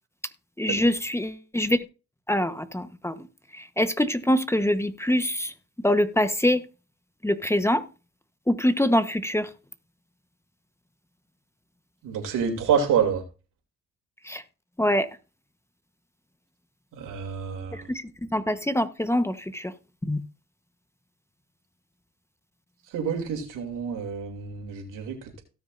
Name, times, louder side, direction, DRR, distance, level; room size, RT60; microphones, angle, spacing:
voice 1, 0.6-1.8 2.3-3.3 3.5-5.5 5.8-6.6 7.2-7.8 8.5-9.5 14.2-14.4 14.8-15.1 17.7-19.7 20.1-20.2, left 1 dB, 10° left, 10 dB, 1.1 m, -24 dB
voice 2, 12.0-13.2 16.9-17.9 22.9-25.4, right 7 dB, 80° right, 3 dB, 2.9 m, -28 dB
17.5 x 6.4 x 2.6 m, 0.32 s
supercardioid pair, 70°, 31 cm